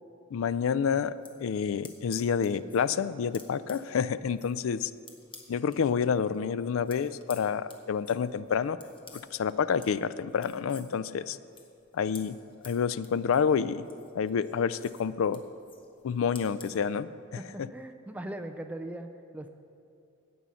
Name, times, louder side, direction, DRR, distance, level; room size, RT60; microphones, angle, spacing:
voice 1, 0.3-1.1 1.4-4.9 5.5-8.8 9.1-11.4 11.9-12.3 12.6-13.8 14.1-15.4 16.0-17.1 17.6-17.7, left 6 dB, 70° left, 16 dB, 0.4 m, -28 dB
sound 1, 1.0-5.8 6.1-16.8, left 4 dB, 25° left, 1.1 m, -53 dB
voice 2, 17.4-19.5, right 1 dB, 5° right, 7 dB, 0.4 m, -40 dB
16.5 x 5.6 x 6.3 m, 2.5 s
head